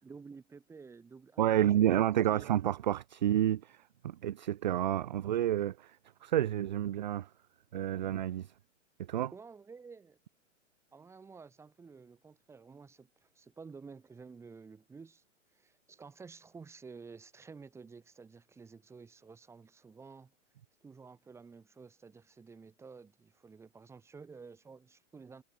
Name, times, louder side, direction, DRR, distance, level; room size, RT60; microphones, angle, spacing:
voice 1, 0.0-2.0 2.3-2.5 9.3-10.2 10.9-15.2 15.5-20.3 20.8-25.4, right 5 dB, 5° right, 3.5 m, -52 dB
voice 2, 1.4-6.0 6.2-7.3 7.7-8.5 9.1-9.3, right 12 dB, 40° right, 0.4 m, -29 dB
hypercardioid pair, 165°, 38 cm